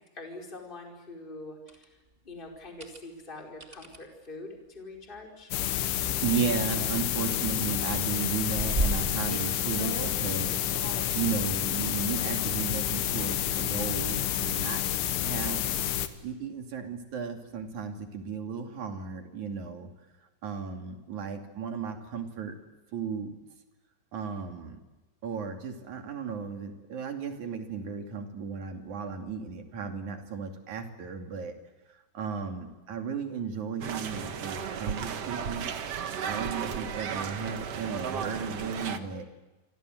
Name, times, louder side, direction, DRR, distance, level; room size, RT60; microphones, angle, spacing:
voice 1, 0.1-2.0 2.2-5.5, left 2 dB, 10° left, 1 dB, 4.5 m, -44 dB
sound 1, 1.7-1.8 2.6-3.0 3.6-4.0 5.2-5.4 5.9-6.0 6.2-7.2 7.5-10.2 10.7-11.3 11.9-12.8 14.1-14.6 15.1-15.2 17.6-17.7, right 2 dB, 20° right, 1.7 m, -36 dB
sound 2, 5.5-16.1, left 12 dB, 85° left, 3.8 m, -29 dB
voice 2, 6.2-10.6 11.1-14.8 15.2-15.7 16.2-19.9 20.4-22.6 22.9-23.4 24.1-24.8 25.2-31.5 32.1-35.7 36.0-39.2, right 6 dB, 45° right, 4 dB, 3.5 m, -35 dB
sound 3, 33.8-39.0, right 7 dB, 80° right, 1.4 m, -34 dB
29.0 x 25.5 x 7.9 m, 1.1 s
omnidirectional pair, 5.3 m